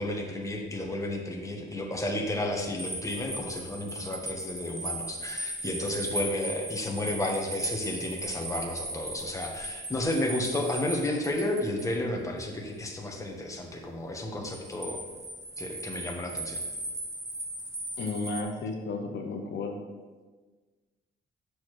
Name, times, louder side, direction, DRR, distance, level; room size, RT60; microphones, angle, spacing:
voice 1, 0.0-15.0 15.6-16.6, left 1 dB, 15° left, 1 dB, 1.3 m, -32 dB
sound 1, 2.6-11.9 14.4-18.4, right 1 dB, 15° right, 1.1 m, -37 dB
voice 2, 18.0-19.8, left 3 dB, 65° left, 2 dB, 0.9 m, -33 dB
8.3 x 6.3 x 3.3 m, 1.3 s
cardioid pair, 90°, 20 cm